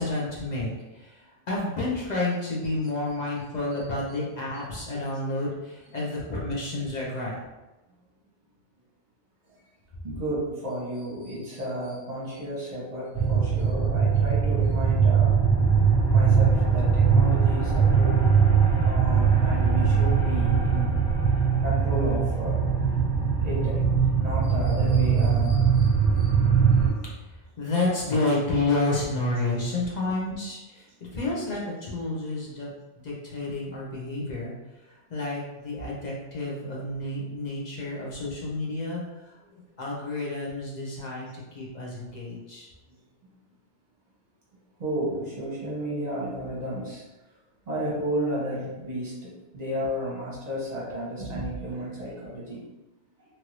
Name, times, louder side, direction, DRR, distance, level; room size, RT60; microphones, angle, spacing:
voice 1, 0.0-7.4 27.6-30.9 31.1-32.7 33.0-34.5 34.9-39.3 39.8-42.7, left 2 dB, 45° left, -4 dB, 0.7 m, -30 dB
voice 2, 10.0-15.4 16.1-18.3 18.8-21.0 21.6-22.6 23.4-23.8 24.1-26.3 37.3-37.4 39.5-39.6 41.3-41.4 44.8-47.0 47.7-52.6, right 1 dB, 40° right, -6 dB, 1.0 m, -33 dB
sound 1, 13.1-26.9, right 6 dB, 65° left, 2.0 m, -21 dB
3.0 x 2.6 x 3.0 m, 1.0 s
omnidirectional pair, 1.2 m